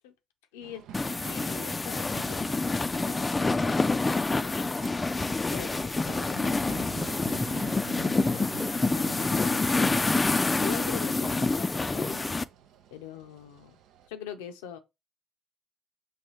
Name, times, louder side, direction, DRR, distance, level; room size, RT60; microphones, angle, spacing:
voice 1, 0.5-0.8 1.2-5.2 5.5-8.6 8.9-9.9 10.6-12.3 12.9-13.8 14.1-14.8, left 8 dB, 85° left, 0.6 m, -44 dB
sound 1, 0.6-14.1, right 9 dB, 75° right, 0.4 m, -47 dB
sound 2, 0.9-12.4, left 3 dB, 25° left, 0.4 m, -27 dB
sound 3, 1.9-2.5 3.0-3.2 3.6-4.2 4.8-4.9 5.4-5.6, right 4 dB, 40° right, 0.7 m, -51 dB
6.3 x 2.3 x 3.1 m
hypercardioid pair, 50°, 0 cm